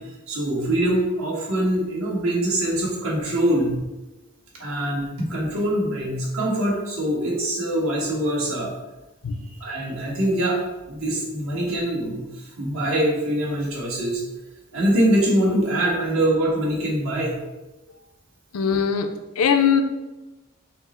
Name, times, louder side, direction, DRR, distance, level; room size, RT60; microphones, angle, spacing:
voice 1, 0.3-3.7 4.6-8.7 9.4-10.6 10.9-14.2 14.7-17.3 18.7-18.8, right 1 dB, 70° right, -3 dB, 1.3 m, -23 dB
voice 2, 18.5-19.1 19.4-19.8, left 7 dB, 80° left, 7 dB, 0.5 m, -20 dB
5.7 x 2.0 x 4.3 m, 1.1 s
head